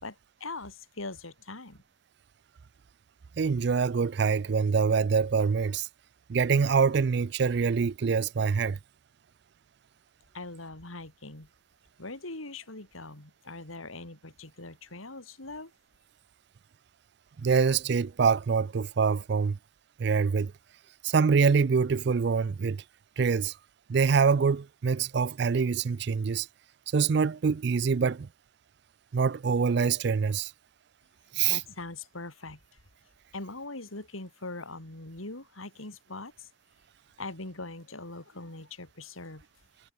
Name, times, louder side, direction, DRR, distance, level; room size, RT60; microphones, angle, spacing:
voice 1, 0.0-1.8 10.3-11.5 12.0-15.7 31.5-32.6 33.3-36.5 37.2-39.4, left 2 dB, 90° left, 4.2 m, -41 dB
voice 2, 3.4-5.9 6.3-8.8 17.4-19.6 20.0-20.5 21.0-22.8 23.2-23.5 23.9-26.5 26.9-28.3 29.1-30.5 31.3-31.6, right 5 dB, 55° right, 0.4 m, -25 dB
head